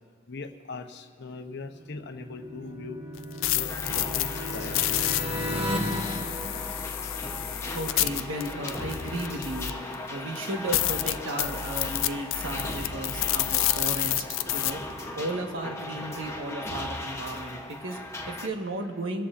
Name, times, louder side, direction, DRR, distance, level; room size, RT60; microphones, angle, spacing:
voice 1, 0.3-3.0 3.5-5.1 5.5-5.7 6.6-6.8, left 3 dB, 60° left, 7 dB, 0.8 m, -41 dB
sound 1, 1.7-7.5, equal, 30° right, 1.2 m, -35 dB
sound 2, 3.2-9.9 10.4-10.5 10.7-14.7, left 13 dB, 80° left, 0.4 m, -29 dB
sound 3, 3.7-18.5, left 1 dB, 15° left, 0.9 m, -38 dB
voice 2, 7.7-19.3, right 1 dB, 75° right, 3 dB, 1.4 m, -35 dB
25.5 x 14.0 x 2.5 m, 2.2 s
head